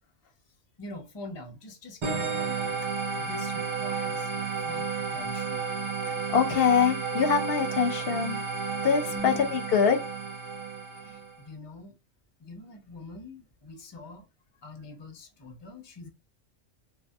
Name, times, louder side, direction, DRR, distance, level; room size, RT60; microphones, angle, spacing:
voice 1, 0.8-2.7 3.2-5.6 9.1-9.5 10.9-11.9 12.4-14.3 14.6-16.1, left 2 dB, 30° left, 0.5 m, -44 dB
sound 1, 2.0-11.4, right 5 dB, 50° right, 0.3 m, -32 dB
voice 2, 6.3-8.4 8.8-10.0, left 7 dB, 60° left, 0.8 m, -24 dB
2.8 x 2.6 x 2.3 m
omnidirectional pair, 1.2 m